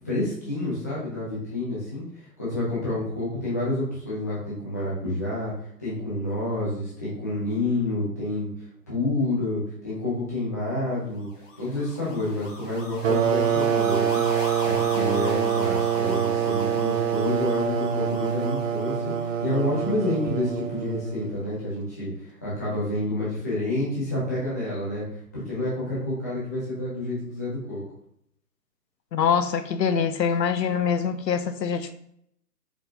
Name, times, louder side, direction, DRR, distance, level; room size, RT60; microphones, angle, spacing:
voice 1, 0.0-5.5 5.8-8.5 8.9-11.3 11.6-14.3 14.6-27.8, left 1 dB, 10° left, 0.5 m, -29 dB
sound 1, 11.3-20.6, left 2 dB, 50° left, 1.3 m, -38 dB
sound 2, 13.0-21.4, right 8 dB, 55° right, 0.6 m, -25 dB
voice 2, 29.1-31.9, left 7 dB, 85° left, 0.7 m, -24 dB
4.4 x 4.1 x 2.8 m
hypercardioid pair, 145°, 49 cm